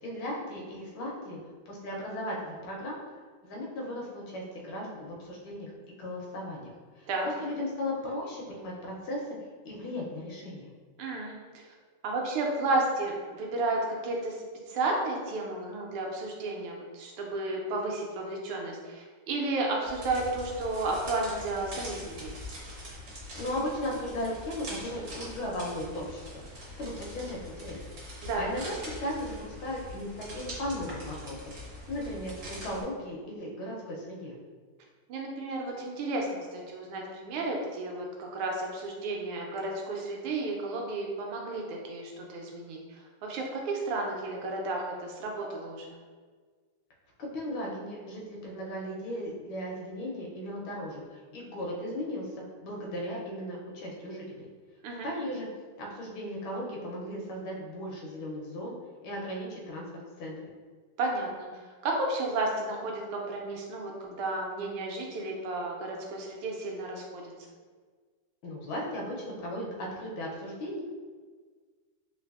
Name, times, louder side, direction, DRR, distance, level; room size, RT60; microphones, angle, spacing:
voice 1, 0.0-1.4 1.7-3.0 3.4-5.7 6.0-9.3 9.6-10.7 23.3-26.4 26.8-27.8 28.1-34.3 47.2-54.5 55.0-55.5 55.8-58.7 59.0-59.9 60.2-60.4 68.4-70.8, left 1 dB, 75° left, -2 dB, 1.4 m, -36 dB
voice 2, 11.0-11.4 12.0-14.4 14.7-22.3 28.2-28.4 35.1-46.0 54.8-55.1 61.0-67.3, right 2 dB, 80° right, 0 dB, 1.4 m, -32 dB
sound 1, 19.9-32.8, left 1 dB, 60° right, 0.8 m, -43 dB
3.9 x 2.5 x 2.4 m, 1.5 s
omnidirectional pair, 2.4 m